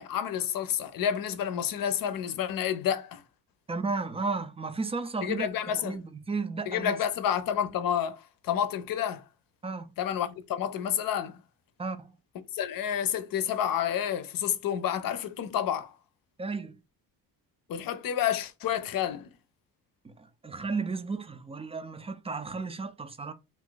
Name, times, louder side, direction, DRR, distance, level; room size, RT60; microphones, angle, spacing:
voice 1, 0.0-3.2 5.2-6.0 6.7-9.2 10.0-11.4 12.5-15.9 17.7-19.3, left 9 dB, 60° left, 0.6 m, -29 dB
voice 2, 3.7-5.5 5.8-6.9 9.6-9.9 11.8-12.1 16.4-16.8 20.0-23.3, right 4 dB, 15° right, 0.3 m, -33 dB
2.5 x 2.4 x 3.8 m
cardioid pair, 85°, 38 cm